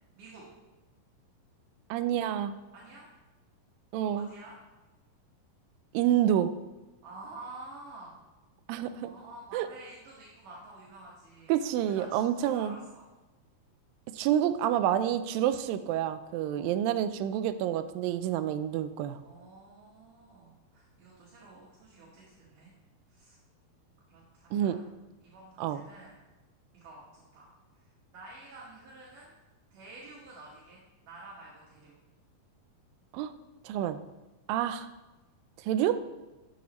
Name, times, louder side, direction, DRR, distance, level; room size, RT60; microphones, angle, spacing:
voice 1, 1.9-2.5 3.9-4.3 5.9-6.5 8.7-9.1 9.5-9.7 11.5-12.8 14.1-19.2 24.5-24.8 25.6-25.8 33.1-33.3 33.7-34.0 34.5-34.9 35.6-36.0, right 11 dB, 80° right, 11 dB, 2.1 m, -28 dB
voice 2, 2.7-3.1 4.1-4.6 7.0-8.2 8.7-11.6 12.0-13.0 16.4-16.9 19.2-22.7 23.1-23.4 24.1-26.2 26.7-27.5 27.7-27.8 28.1-29.3 29.7-31.9, right 2 dB, 65° right, -5 dB, 2.9 m, -50 dB
11.5 x 7.3 x 3.0 m, 1.1 s
omnidirectional pair, 4.2 m